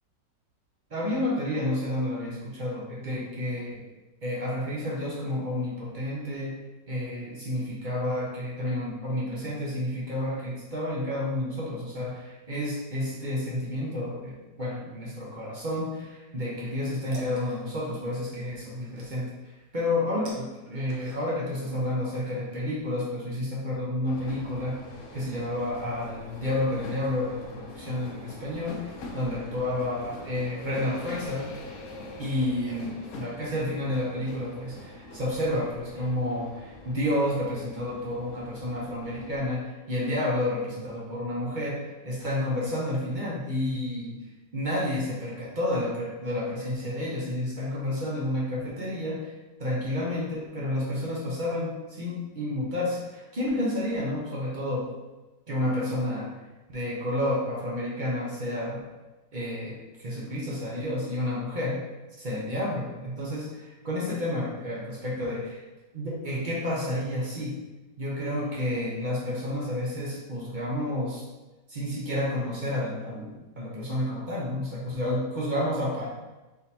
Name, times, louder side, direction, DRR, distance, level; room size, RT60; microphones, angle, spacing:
voice 1, 0.9-3.8 4.2-6.6 6.9-19.3 19.7-24.8 25.1-31.5 32.2-44.2 44.5-49.3 49.6-54.9 55.5-56.3 56.7-58.8 59.3-61.8 62.2-65.6 65.9-67.5 68.0-71.2 71.7-76.1, left 1 dB, 45° right, -5 dB, 0.6 m, -30 dB
sound 1, 16.6-21.6, right 2 dB, 80° right, 1.5 m, -49 dB
sound 2, 24.0-39.5, left 2 dB, 65° left, 0.8 m, -43 dB
4.2 x 3.8 x 2.8 m, 1.1 s
omnidirectional pair, 1.9 m